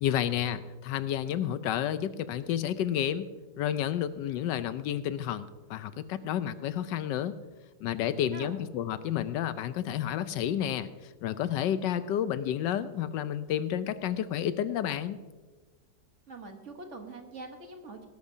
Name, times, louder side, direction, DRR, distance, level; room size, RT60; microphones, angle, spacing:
voice 1, 0.0-3.3 3.6-7.3 7.8-10.9 11.2-15.2, left 10 dB, 85° left, 13 dB, 1.3 m, -30 dB
voice 2, 16.3-18.1, right 3 dB, 45° right, 4 dB, 1.3 m, -44 dB
19.0 x 11.5 x 2.7 m, 1.3 s
omnidirectional pair, 1.9 m